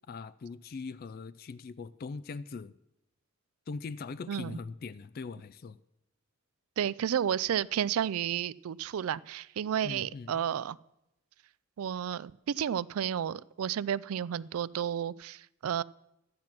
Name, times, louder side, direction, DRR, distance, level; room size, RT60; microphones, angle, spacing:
voice 1, 0.1-2.8 3.7-5.8 9.8-10.4, left 4 dB, 45° left, 16 dB, 0.3 m, -41 dB
voice 2, 4.3-4.6 6.8-10.8 11.8-15.8, right 9 dB, 80° right, 20 dB, 0.4 m, -32 dB
12.0 x 9.4 x 5.9 m, 0.87 s
head